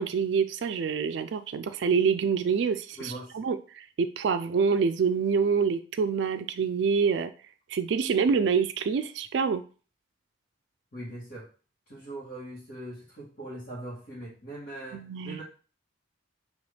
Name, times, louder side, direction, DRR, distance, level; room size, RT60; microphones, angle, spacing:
voice 1, 0.0-7.3 7.7-9.6 14.9-15.4, right 5 dB, 65° right, 10 dB, 0.3 m, -26 dB
voice 2, 3.0-3.5 10.9-11.5 11.9-15.4, right 1 dB, 55° left, -9 dB, 1.6 m, -41 dB
5.4 x 2.9 x 3.3 m, 0.37 s
head